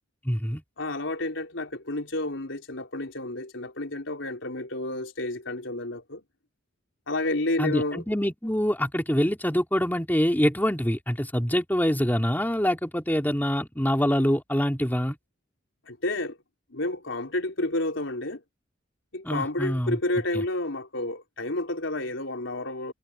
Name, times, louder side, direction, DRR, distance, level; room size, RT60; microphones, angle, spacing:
voice 1, 0.2-0.6 7.6-15.2 19.2-20.0 20.3-20.4, equal, 10° left, 3.1 m, -25 dB
voice 2, 0.8-6.2 7.1-8.0 15.9-16.4 16.7-18.4 19.1-22.9, left 2 dB, 80° left, 4.0 m, -30 dB
head